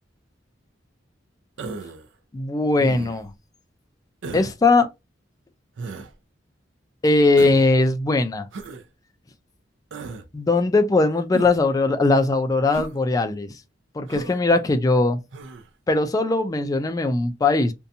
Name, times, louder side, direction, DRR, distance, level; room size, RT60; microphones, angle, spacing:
Human voice, 1.6-2.1 2.8-3.3 4.2-4.5 5.8-6.1 7.4-7.7 8.5-8.8 9.9-10.3 11.3-11.7 12.7-13.0 14.1-14.4 15.3-15.7, right 3 dB, 70° right, 0.5 m, -35 dB
voice 1, 2.3-3.3 4.3-4.9 7.0-8.5 10.3-13.6 13.9-15.2 15.9-17.7, left 3 dB, 20° left, 0.3 m, -20 dB
2.7 x 2.2 x 2.5 m
head